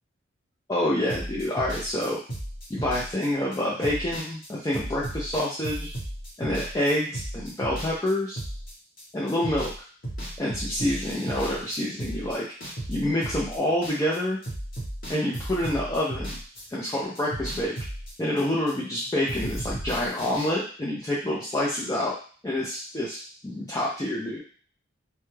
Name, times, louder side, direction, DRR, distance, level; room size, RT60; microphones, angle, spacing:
voice 1, 0.7-2.2 2.7-5.9 6.4-8.4 9.1-9.7 10.4-12.5 12.9-14.4 15.1-16.4 16.7-17.8 18.2-22.2 22.4-24.4, left 1 dB, 15° left, -6 dB, 0.5 m, -27 dB
sound 1, 1.1-9.0 9.3-9.8 10.0-14.2 14.4-19.0 19.3-20.5, right 1 dB, 45° left, 1.0 m, -35 dB
2.3 x 2.2 x 3.1 m, 0.42 s
head